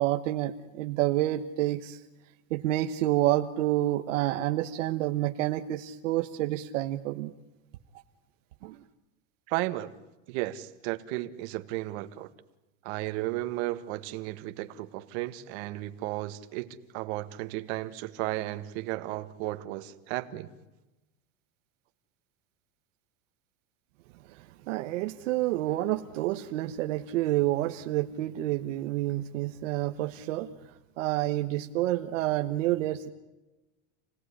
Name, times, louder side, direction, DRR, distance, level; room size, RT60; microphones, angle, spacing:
voice 1, 0.0-2.0 2.5-7.3 8.6-8.8 24.3-30.5 31.0-33.1, right 15 dB, 75° right, 1.3 m, -29 dB
voice 2, 9.5-9.9 10.3-12.3 12.8-20.5, right 17 dB, 55° right, 1.8 m, -34 dB
28.0 x 18.5 x 10.0 m
supercardioid pair, 155°, 38 cm